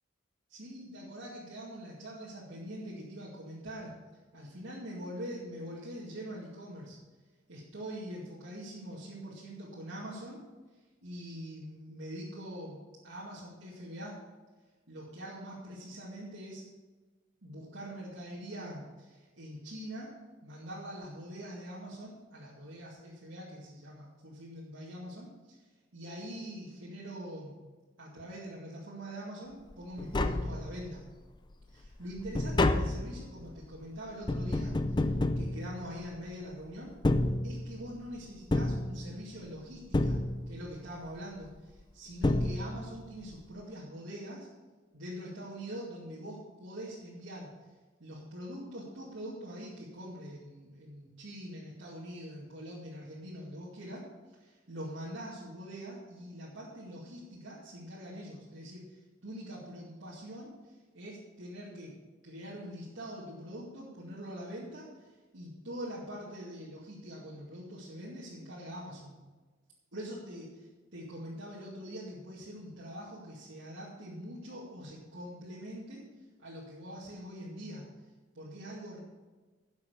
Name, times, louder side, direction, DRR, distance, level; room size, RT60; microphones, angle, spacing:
voice 1, 0.5-3.9 4.3-7.0 7.5-10.4 11.0-14.2 14.9-16.6 17.4-25.6 25.9-27.7 28.0-31.0 31.7-37.0 37.4-40.2 40.5-44.5 44.9-47.5 48.0-69.2 69.9-76.1 76.4-77.9 78.3-79.0, equal, 70° right, -7 dB, 2.3 m, -44 dB
Tap, 29.7-29.8 30.0-31.1 31.5-36.3 36.9-38.0 38.5-39.5 39.9-40.8 41.8-41.9 42.2-43.1 43.3-43.4, left 2 dB, 20° left, 0.5 m, -30 dB
11.0 x 7.1 x 6.9 m, 1.3 s
head